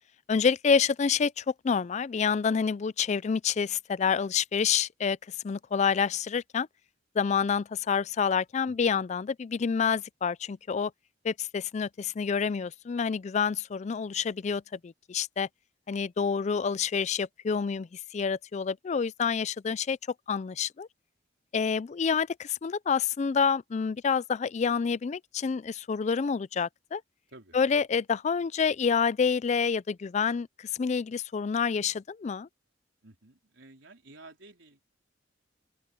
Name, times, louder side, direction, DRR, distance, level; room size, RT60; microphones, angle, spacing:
voice 1, 0.3-5.2 5.4-6.7 7.2-10.9 11.2-15.5 15.9-17.9 18.1-20.0 20.3-20.9 21.5-27.0 27.5-30.5 30.7-32.5, left 6 dB, 35° left, 0.3 m, -28 dB
voice 2, 8.7-9.0 27.3-27.6 33.0-34.8, right 2 dB, 75° right, 3.9 m, -52 dB
open air
head